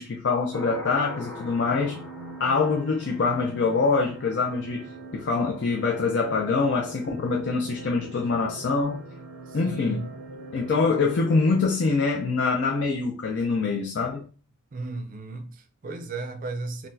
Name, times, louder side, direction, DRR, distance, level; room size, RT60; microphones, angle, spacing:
voice 1, 0.0-2.0 2.4-9.1 9.5-10.1 10.5-14.3, left 4 dB, 50° left, 0.4 m, -25 dB
sound 1, 0.5-3.9, left 1 dB, 10° left, 0.7 m, -41 dB
sound 2, 0.7-11.7, right 1 dB, 85° right, 0.6 m, -43 dB
voice 2, 9.5-10.1 10.6-11.1 14.7-16.9, right 3 dB, 35° right, 0.4 m, -35 dB
4.1 x 2.1 x 2.7 m
head